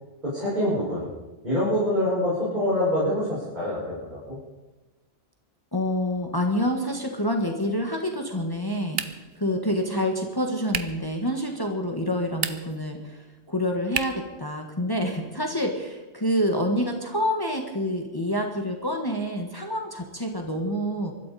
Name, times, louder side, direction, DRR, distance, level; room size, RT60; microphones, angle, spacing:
voice 1, 0.2-1.1 1.4-4.4, left 1 dB, 45° right, -9 dB, 6.0 m, -25 dB
voice 2, 5.7-9.0 9.3-21.1, equal, 20° left, 2 dB, 1.6 m, -27 dB
sound 1, 8.9-9.4 10.7-11.1 12.3-12.8 13.9-14.3, right 7 dB, 70° right, 1.1 m, -31 dB
24.0 x 13.0 x 4.2 m, 1.2 s
omnidirectional pair, 1.1 m